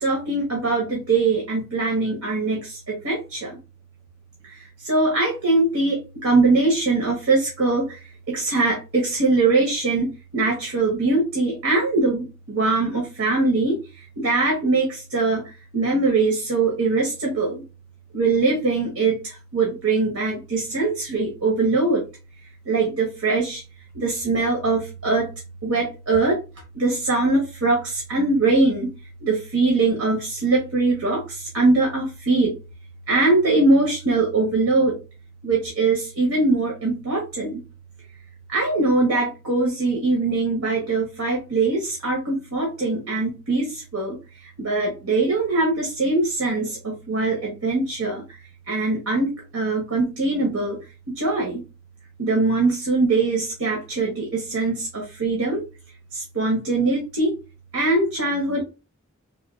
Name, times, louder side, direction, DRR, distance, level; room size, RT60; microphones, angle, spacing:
voice 1, 0.0-3.6 4.8-13.8 14.2-17.6 18.1-22.0 22.6-23.6 23.9-25.3 25.6-26.4 26.7-28.9 29.2-32.5 33.1-35.0 35.4-37.6 38.5-44.2 44.4-48.2 48.7-50.8 51.1-51.6 52.2-55.6 56.1-57.3 57.7-58.6, right 3 dB, 90° right, 0 dB, 1.0 m, -22 dB
3.6 x 2.2 x 2.3 m, 0.29 s
head